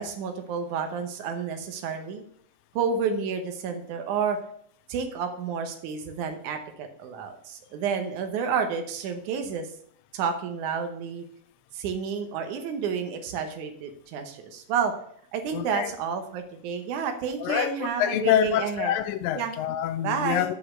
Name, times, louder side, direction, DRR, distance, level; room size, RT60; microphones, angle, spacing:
voice 1, 0.0-2.2 2.7-4.4 4.9-9.7 10.1-11.3 11.7-14.9 15.3-18.9 19.4-19.6 20.0-20.5, right 6 dB, 75° right, 2.5 m, -30 dB
voice 2, 15.5-15.9 17.4-20.5, left 11 dB, 90° left, 1.5 m, -26 dB
8.3 x 5.7 x 6.2 m
omnidirectional pair, 3.6 m